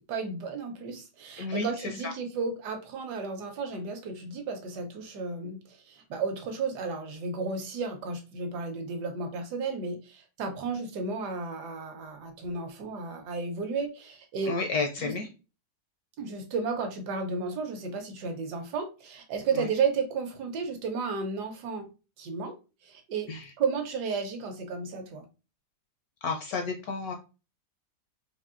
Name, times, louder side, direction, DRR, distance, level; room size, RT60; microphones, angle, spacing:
voice 1, 0.1-14.5 15.0-15.1 16.2-21.9 22.2-22.5 22.8-25.3, right 4 dB, 70° right, 5 dB, 1.2 m, -33 dB
voice 2, 1.4-2.1 14.5-15.3 19.5-19.7 23.3-23.5 26.2-27.1, left 4 dB, 70° left, 3 dB, 0.9 m, -31 dB
4.1 x 2.6 x 2.4 m, 0.31 s
omnidirectional pair, 1.9 m